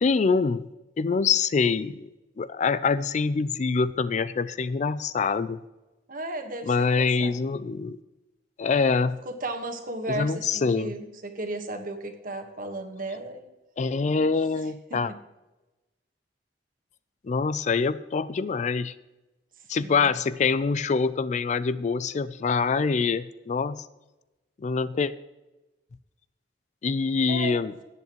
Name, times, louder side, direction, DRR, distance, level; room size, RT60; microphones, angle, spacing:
voice 1, 0.0-0.7 1.0-2.1 2.4-5.6 6.7-8.0 8.6-9.2 10.1-10.9 13.8-15.1 17.2-18.9 19.7-23.8 24.6-25.1 26.8-27.7, left 5 dB, 40° left, 15 dB, 0.4 m, -25 dB
voice 2, 6.1-7.3 9.2-13.5 14.9-15.0 19.8-20.1 27.3-27.7, right 1 dB, 55° right, 6 dB, 1.4 m, -35 dB
17.5 x 8.0 x 3.1 m, 1.1 s
head